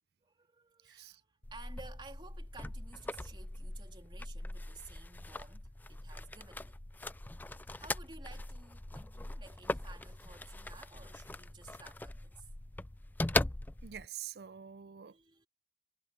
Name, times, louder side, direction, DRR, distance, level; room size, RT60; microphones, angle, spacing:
voice 1, 0.2-6.8 7.6-12.5 15.1-15.5, right 3 dB, 25° right, 3.4 m, -55 dB
voice 2, 0.8-1.2 13.8-15.2, right 9 dB, 65° right, 0.5 m, -46 dB
sound 1, 1.4-14.1, left 2 dB, 10° left, 0.3 m, -40 dB
head